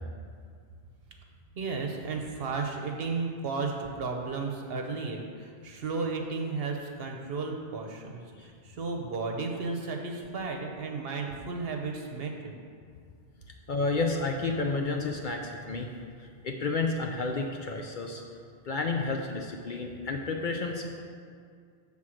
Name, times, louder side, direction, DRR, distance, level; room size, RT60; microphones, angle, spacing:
voice 1, 1.5-12.6, right 4 dB, 60° right, 2 dB, 1.0 m, -34 dB
voice 2, 13.7-15.9 16.2-18.2 18.6-21.0, left 3 dB, 55° left, 2 dB, 0.6 m, -31 dB
7.4 x 3.8 x 6.3 m, 2.2 s
omnidirectional pair, 1.2 m